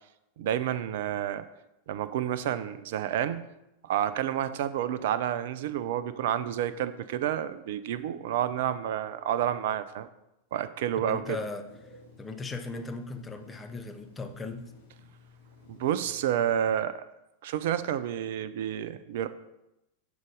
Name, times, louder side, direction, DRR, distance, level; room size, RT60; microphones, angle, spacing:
voice 1, 0.4-1.4 1.9-3.5 3.8-10.1 10.5-11.4 15.7-17.1 17.4-19.3, right 10 dB, 55° right, 13 dB, 0.4 m, -29 dB
voice 2, 11.0-14.7, left 3 dB, 15° left, 6 dB, 0.6 m, -38 dB
Telephone, 11.6-16.8, left 3 dB, 70° left, 1.9 m, -54 dB
7.3 x 3.9 x 4.9 m, 0.89 s
figure-of-eight pair, 90°, 0 cm